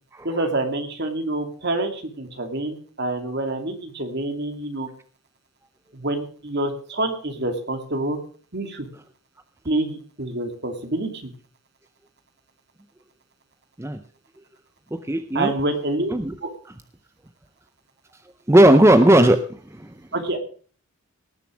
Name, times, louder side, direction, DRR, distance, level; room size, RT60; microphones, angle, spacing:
voice 1, 0.2-4.9 5.9-8.2 8.5-8.9 9.6-11.3 15.3-16.1 16.4-16.5 20.1-20.4, right 2 dB, 50° right, 6 dB, 2.5 m, -27 dB
voice 2, 14.9-15.5 16.1-16.3 18.5-19.9, right 1 dB, 10° right, 10 dB, 0.5 m, -16 dB
18.5 x 6.9 x 6.1 m, 0.43 s
head